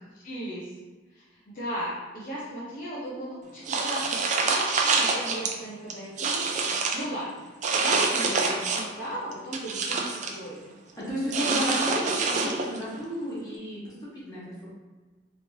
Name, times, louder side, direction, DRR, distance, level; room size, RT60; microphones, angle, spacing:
voice 1, 0.2-0.7 1.1-6.7 6.9-7.5 7.8-10.6 10.9-11.3, right 1 dB, 50° left, -8 dB, 0.7 m, -36 dB
sound 1, 3.7-5.5 5.9-7.0 7.6-9.0 9.3-10.4 11.3-12.8, right 4 dB, 40° right, 0.4 m, -26 dB
voice 2, 11.0-14.7, equal, 20° left, -9 dB, 1.2 m, -32 dB
3.1 x 3.0 x 2.7 m, 1.3 s
head